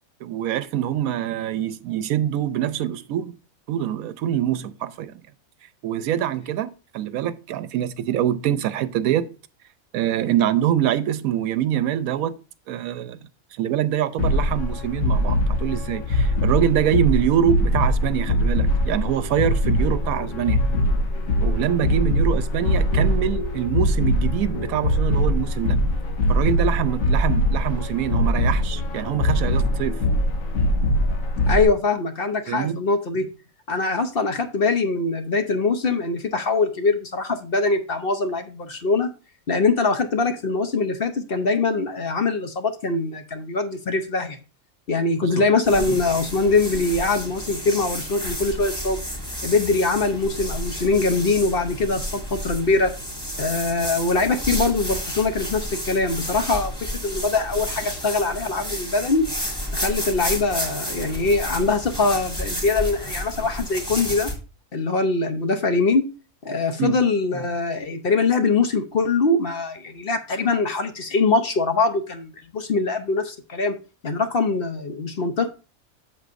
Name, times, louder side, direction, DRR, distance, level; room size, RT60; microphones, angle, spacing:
voice 1, 0.2-3.3 3.7-5.2 5.8-9.3 9.9-12.3 12.7-13.2 13.5-20.6 21.4-25.8 26.3-30.0 32.5-32.8 45.2-45.5 66.8-67.0, right 11 dB, 85° right, 1.1 m, -24 dB
sound 1, 14.2-31.6, left 1 dB, 75° left, 1.3 m, -22 dB
voice 2, 31.5-33.3 33.7-39.1 39.5-44.4 44.9-49.0 49.4-52.9 53.4-56.7 57.0-59.3 59.7-64.3 64.7-66.0 66.4-73.8 74.0-75.5, left 3 dB, 50° left, 0.9 m, -22 dB
sound 2, 45.6-64.3, equal, 5° left, 2.1 m, -31 dB
7.9 x 7.3 x 2.5 m
omnidirectional pair, 1.5 m